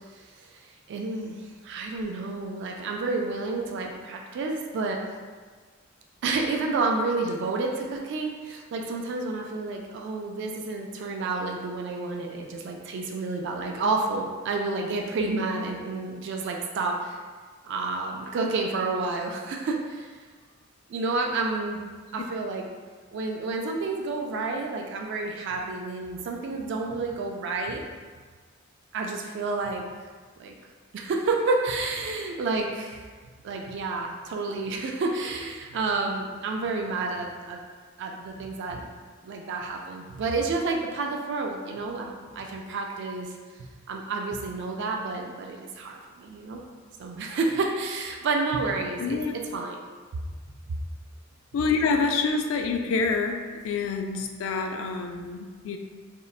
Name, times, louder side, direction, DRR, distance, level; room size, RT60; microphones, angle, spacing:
voice 1, 0.1-5.0 6.2-17.2 17.6-20.2 20.9-21.8 22.1-22.6 23.1-27.8 28.9-29.8 30.4-30.5 30.9-33.0 33.4-37.6 38.0-38.9 39.2-43.3 43.6-46.6 47.0-49.2 49.5-49.8, right 3 dB, 60° right, 1 dB, 0.3 m, -30 dB
voice 2, 49.0-49.3 51.5-55.8, left 4 dB, 80° left, 4 dB, 0.3 m, -27 dB
3.7 x 2.1 x 2.3 m, 1.5 s
head